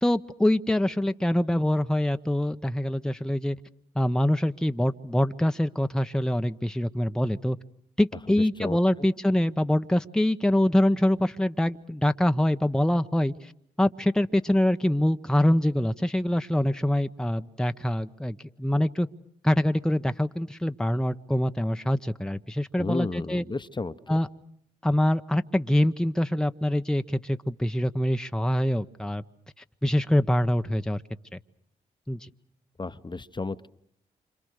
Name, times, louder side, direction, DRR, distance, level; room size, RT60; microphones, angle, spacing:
voice 1, 0.0-3.6 3.9-7.6 8.0-13.5 13.8-19.1 19.4-23.4 24.1-24.3 24.8-29.2 29.8-31.0 31.3-31.4 32.1-32.3, left 1 dB, 5° left, 8 dB, 1.1 m, -24 dB
voice 2, 8.3-9.1 22.8-24.2 32.8-33.7, left 3 dB, 25° left, 12 dB, 1.1 m, -33 dB
28.5 x 26.5 x 6.6 m, 0.68 s
hypercardioid pair, 45°, 17 cm